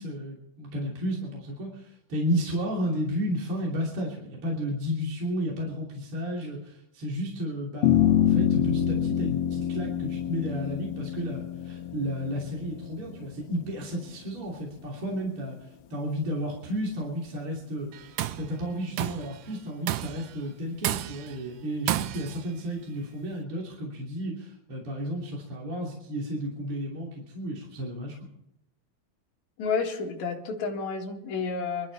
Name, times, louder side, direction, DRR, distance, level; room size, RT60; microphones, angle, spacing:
voice 1, 0.0-28.2, equal, 40° right, -3 dB, 3.7 m, -32 dB
sound 1, 7.8-14.4, left 10 dB, 85° left, 2.6 m, -26 dB
Tools, 17.9-18.5 19.0-19.3 19.9-20.3 20.8-21.4 21.9-22.4, right 14 dB, 80° right, 2.4 m, -30 dB
voice 2, 29.6-31.9, left 5 dB, 55° left, 0 dB, 3.4 m, -30 dB
24.0 x 13.0 x 4.1 m, 0.80 s
omnidirectional pair, 4.1 m